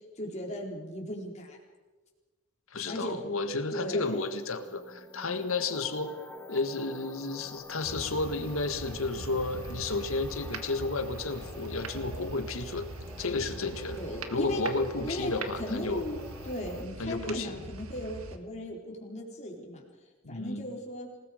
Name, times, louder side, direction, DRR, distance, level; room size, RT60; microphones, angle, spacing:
voice 1, 0.2-1.6 2.9-3.2 3.7-4.3 14.0-14.6 14.9-16.2 16.4-19.8 20.3-21.1, equal, 35° left, -1 dB, 4.0 m, -37 dB
voice 2, 2.7-6.1 6.5-12.9 13.2-14.0 14.3-16.0 17.0-17.7 20.2-20.7, left 3 dB, 70° left, 8 dB, 1.7 m, -32 dB
sound 1, 4.0-16.8, left 3 dB, 10° left, 0.9 m, -48 dB
sound 2, 7.8-18.4, right 2 dB, 90° right, 1.6 m, -42 dB
27.0 x 19.0 x 5.1 m, 1.3 s
head